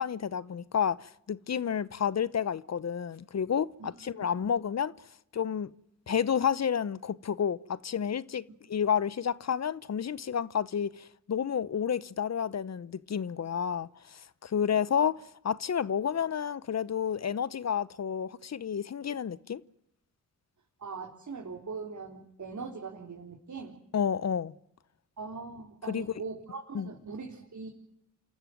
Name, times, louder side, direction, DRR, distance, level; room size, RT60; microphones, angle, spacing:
voice 1, 0.0-4.9 5.3-5.7 6.1-19.6 23.9-24.5 25.9-26.1 26.7-26.9, left 8 dB, 50° left, 0.9 m, -30 dB
voice 2, 3.8-4.3 20.8-23.8 25.2-27.7, right 4 dB, 60° right, 4.2 m, -41 dB
27.5 x 14.0 x 9.4 m
supercardioid pair, 45°, 34 cm